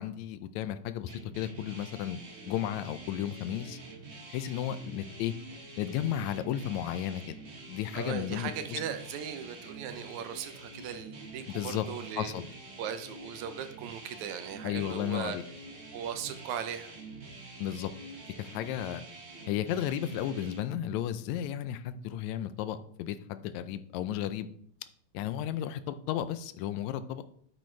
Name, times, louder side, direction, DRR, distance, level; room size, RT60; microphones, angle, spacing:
voice 1, 0.0-2.2 2.5-3.8 4.3-5.3 5.8-7.2 7.7-8.8 11.5-11.9 12.2-12.4 14.6-15.4 17.6-17.9 18.4-19.0 19.5-24.5 25.1-27.2, left 11 dB, 80° left, 12 dB, 1.9 m, -33 dB
sound 1, 1.1-20.6, right 2 dB, 50° right, 0.8 m, -47 dB
voice 2, 8.0-12.3 12.8-15.4 15.9-16.9, right 8 dB, 80° right, 9 dB, 2.1 m, -38 dB
9.0 x 7.8 x 3.3 m, 0.64 s
omnidirectional pair, 3.4 m